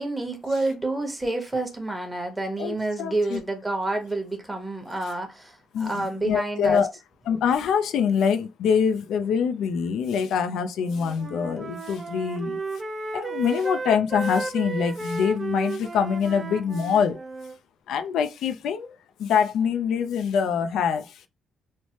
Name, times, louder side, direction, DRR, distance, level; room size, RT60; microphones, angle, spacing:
voice 1, 0.0-6.8, right 2 dB, 15° right, 0.9 m, -28 dB
voice 2, 2.6-3.4 5.7-6.9 7.3-12.6 13.1-17.2 17.9-21.3, left 7 dB, 80° left, 0.3 m, -25 dB
Wind instrument woodwind instrument, 10.8-17.6, right 3 dB, 30° right, 0.4 m, -34 dB
3.1 x 2.0 x 2.8 m
cardioid pair, 90°, 0 cm